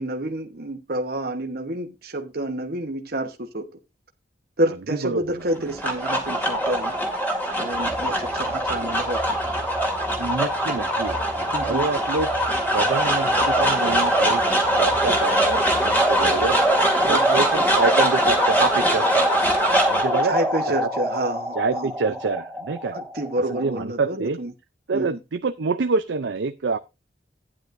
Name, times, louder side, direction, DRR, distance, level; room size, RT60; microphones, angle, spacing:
voice 1, 0.0-3.7 4.6-6.9 7.6-9.4 11.5-11.8 17.0-17.4 20.2-21.9 22.9-24.5 24.9-25.2, right 1 dB, 55° right, 1.1 m, -29 dB
voice 2, 4.9-5.5 10.2-12.3 12.7-14.4 14.8-16.6 17.1-19.3 19.9-20.4 21.6-23.0 23.5-24.4 24.9-26.8, right 4 dB, 75° right, 0.5 m, -26 dB
sound 1, 5.5-23.8, right 1 dB, 10° left, 2.2 m, -22 dB
Bird, 7.7-16.7, equal, 40° left, 7.8 m, -41 dB
12.0 x 9.8 x 2.6 m
head